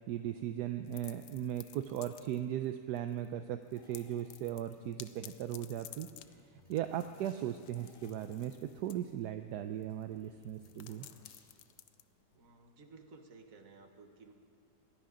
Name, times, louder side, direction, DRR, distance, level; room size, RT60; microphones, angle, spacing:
voice 1, 0.1-6.1 6.7-11.0, right 11 dB, 75° right, 8 dB, 1.1 m, -37 dB
sound 1, 0.8-2.6 2.9-3.3 3.6-12.7, left 12 dB, 80° left, 1.2 m, -55 dB
sound 2, 3.7-5.2 5.8-9.2 9.5-9.6 9.8-11.7, left 1 dB, 30° left, 3.9 m, -64 dB
voice 2, 12.3-14.3, right 3 dB, 55° right, 5 dB, 1.7 m, -56 dB
22.5 x 16.5 x 3.8 m, 2.5 s
omnidirectional pair, 1.8 m